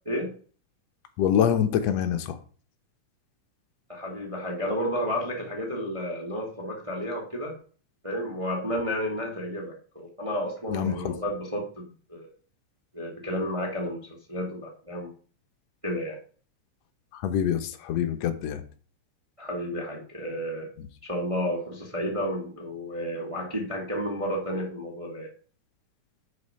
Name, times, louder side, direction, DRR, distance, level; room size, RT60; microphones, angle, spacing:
voice 1, 1.2-2.4 10.7-11.1 17.1-18.6 20.8-20.9, left 9 dB, 65° left, 7 dB, 1.8 m, -25 dB
voice 2, 3.9-7.5 8.0-11.8 12.1-12.3 12.9-15.1 15.8-16.2 19.4-20.7 21.0-25.3, equal, 20° right, 0 dB, 0.9 m, -31 dB
6.9 x 6.7 x 5.6 m, 0.42 s
omnidirectional pair, 3.8 m